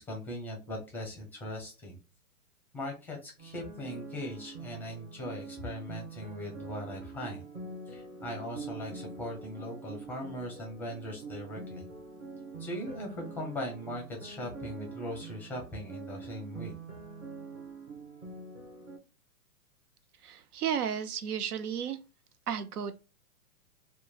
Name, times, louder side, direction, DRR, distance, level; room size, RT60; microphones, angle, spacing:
voice 1, 0.0-2.0 2.7-7.4 7.9-11.9 12.6-16.7, left 1 dB, 5° left, 0.6 m, -39 dB
sound 1, 3.4-19.0, right 4 dB, 25° right, 0.9 m, -45 dB
voice 2, 20.2-22.0 22.5-23.0, right 8 dB, 85° right, 0.6 m, -33 dB
3.0 x 2.2 x 2.3 m
hypercardioid pair, 130°, 45 cm